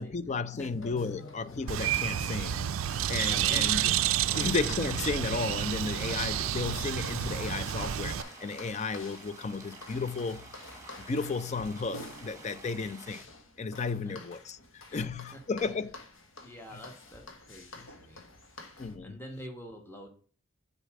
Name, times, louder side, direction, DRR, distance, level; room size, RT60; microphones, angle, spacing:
voice 1, 0.0-2.7 3.1-3.9 4.3-10.5 11.0-13.3 13.6-16.0 18.8-19.2, left 4 dB, 35° left, 0.4 m, -33 dB
sound 1, 0.6-19.0, left 2 dB, 85° left, 1.4 m, -50 dB
Bird, 1.7-8.2, right 10 dB, 85° right, 0.4 m, -30 dB
voice 2, 3.3-3.7 4.2-4.5 14.0-14.1 14.9-15.4 15.7-15.8 16.4-18.7 19.0-20.1, equal, 10° left, 1.2 m, -47 dB
sound 2, 4.4-13.2, right 2 dB, 15° right, 1.3 m, -50 dB
6.7 x 4.2 x 4.7 m
head